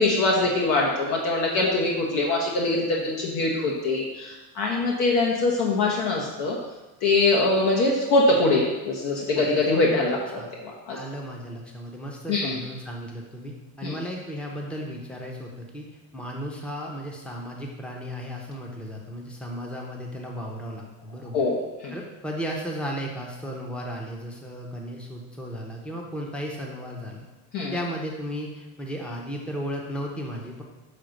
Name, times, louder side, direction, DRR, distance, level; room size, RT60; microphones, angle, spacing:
voice 1, 0.0-6.6 7.0-11.0 12.3-12.5 13.8-14.0 21.3-21.6 21.8-21.9 27.5-27.8, left 2 dB, 60° left, -2 dB, 1.3 m, -23 dB
voice 2, 10.9-15.8 16.1-21.4 21.9-27.3 27.7-30.6, equal, 5° left, -1 dB, 0.8 m, -35 dB
6.6 x 3.9 x 6.4 m, 1.1 s
cardioid pair, 155°, 41 cm